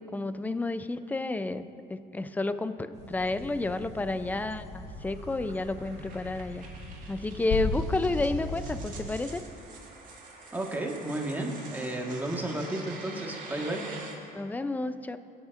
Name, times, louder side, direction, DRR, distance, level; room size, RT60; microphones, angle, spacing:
voice 1, 0.1-6.6 7.1-9.4 14.3-15.2, left 2 dB, 10° left, 11 dB, 0.4 m, -31 dB
sound 1, 2.9-9.2, left 2 dB, 80° left, 2.0 m, -37 dB
sound 2, 3.4-14.1, right 3 dB, 50° right, 2.1 m, -47 dB
voice 2, 10.5-13.8, right 1 dB, 10° right, 0 dB, 1.4 m, -33 dB
20.5 x 9.0 x 2.5 m, 2.7 s
cardioid pair, 110°, 17 cm